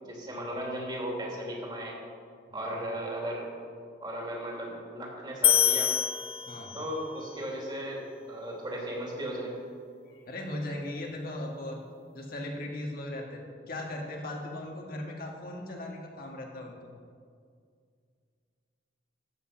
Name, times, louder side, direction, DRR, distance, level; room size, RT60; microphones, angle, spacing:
voice 1, 0.0-2.0 2.5-3.5 4.0-5.9 6.7-9.5, right 1 dB, 25° right, -2 dB, 2.9 m, -36 dB
sound 1, 5.4-7.1, left 10 dB, 35° left, 0.6 m, -25 dB
voice 2, 10.1-11.8 12.1-13.4 13.7-16.8, left 1 dB, 55° left, 0 dB, 1.8 m, -38 dB
14.0 x 8.2 x 5.9 m, 2.2 s
head